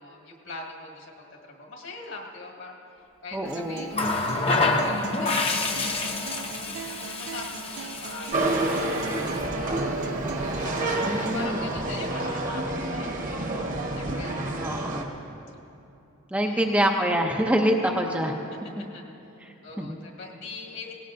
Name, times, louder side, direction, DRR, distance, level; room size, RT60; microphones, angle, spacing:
voice 1, 0.0-9.9 10.4-13.4 14.0-14.7 16.4-16.7 18.9-19.0 19.3-20.9, left 3 dB, 60° left, -1 dB, 1.8 m, -42 dB
voice 2, 3.3-3.8 11.0-11.7 14.6-15.1 16.3-18.3 19.8-20.0, equal, 5° right, 2 dB, 0.5 m, -25 dB
Acoustic guitar, 3.5-11.5, right 7 dB, 90° right, 0.4 m, -41 dB
Water tap faucet, 3.9-9.5 10.7-10.9, left 3 dB, 25° left, 0.7 m, -28 dB
sound 1, 8.3-15.0, right 2 dB, 40° right, 1.1 m, -28 dB
18.0 x 17.0 x 2.6 m, 2.9 s
head